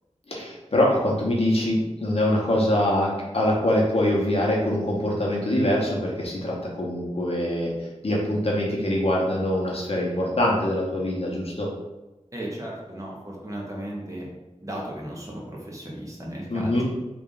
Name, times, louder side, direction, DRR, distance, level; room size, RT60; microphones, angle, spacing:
voice 1, 0.3-7.7 8.0-11.7 16.5-16.8, left 1 dB, 55° left, -3 dB, 0.9 m, -24 dB
voice 2, 12.3-14.3 14.6-16.8, right 1 dB, 25° right, -3 dB, 0.9 m, -35 dB
3.3 x 2.5 x 3.9 m, 1.0 s
wide cardioid pair, 70°, 12 cm